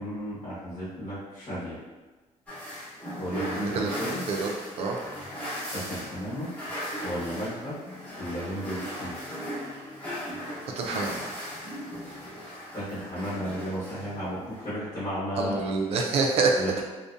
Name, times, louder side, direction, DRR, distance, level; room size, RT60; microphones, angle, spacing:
voice 1, 0.0-1.8 3.2-4.2 5.7-6.5 7.0-7.7 8.2-9.1 12.7-15.6 16.6-16.9, equal, 45° left, -12 dB, 0.9 m, -34 dB
sound 1, 2.5-14.7, equal, 10° left, 0.9 m, -37 dB
voice 2, 3.6-4.0 4.3-4.5 4.8-5.0 10.8-11.2 15.4-16.6, right 4 dB, 50° right, 2 dB, 0.4 m, -26 dB
2.6 x 2.1 x 2.4 m, 1.3 s
cardioid pair, 170°, 13 cm